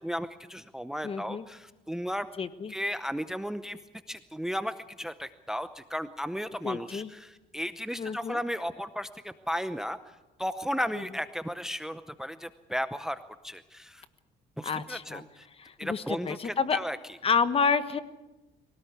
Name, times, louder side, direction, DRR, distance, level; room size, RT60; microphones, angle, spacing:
voice 1, 0.0-2.3 2.7-3.8 4.1-10.0 10.4-14.0 14.6-15.5 15.8-17.0, equal, 5° right, 12 dB, 0.7 m, -34 dB
voice 2, 1.0-1.4 2.4-2.7 6.6-7.1 8.0-8.4 10.9-11.0 14.6-15.2 15.5-16.8 17.2-18.0, left 5 dB, 35° left, 12 dB, 1.3 m, -29 dB
23.5 x 17.5 x 8.1 m, 1.1 s
cardioid pair, 110°, 17 cm